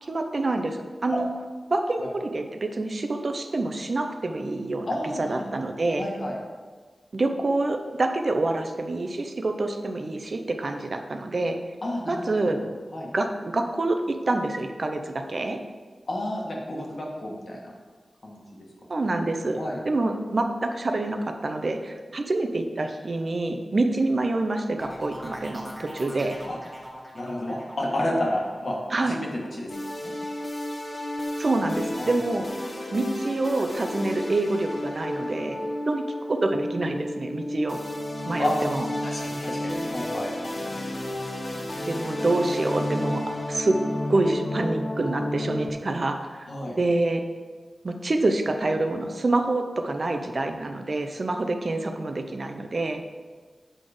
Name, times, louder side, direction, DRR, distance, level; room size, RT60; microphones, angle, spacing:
voice 1, 0.0-1.3 1.7-6.1 7.1-11.6 12.1-12.6 13.1-15.6 18.9-26.4 28.9-29.2 31.4-32.5 32.9-35.6 35.9-37.8 38.3-38.9 41.9-43.8 44.1-46.5 46.8-47.2 47.8-53.0, right 2 dB, 50° right, 5 dB, 0.6 m, -27 dB
voice 2, 4.9-5.5 6.0-6.4 11.8-12.6 12.9-13.1 16.1-17.7 18.2-18.4 19.6-19.8 26.5-26.6 27.1-29.7 30.0-30.1 32.0-32.2 38.4-38.6 39.0-40.3 46.5-46.8, left 1 dB, 55° left, -1 dB, 1.5 m, -30 dB
sound 1, 24.8-30.4 30.8-31.3, equal, 5° right, 1.8 m, -43 dB
sound 2, 29.7-45.7, left 1 dB, 40° left, 0.9 m, -31 dB
7.5 x 4.2 x 4.9 m, 1.4 s
wide cardioid pair, 85°, 0 cm